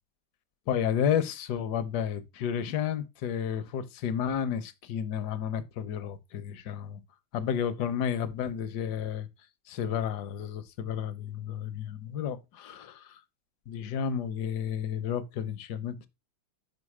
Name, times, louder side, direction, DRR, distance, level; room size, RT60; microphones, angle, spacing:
voice 1, 0.7-7.0 7.3-9.3 9.7-13.2 13.7-16.1, left 8 dB, 70° left, 1.2 m, -31 dB
5.3 x 5.1 x 4.7 m
omnidirectional pair, 2.1 m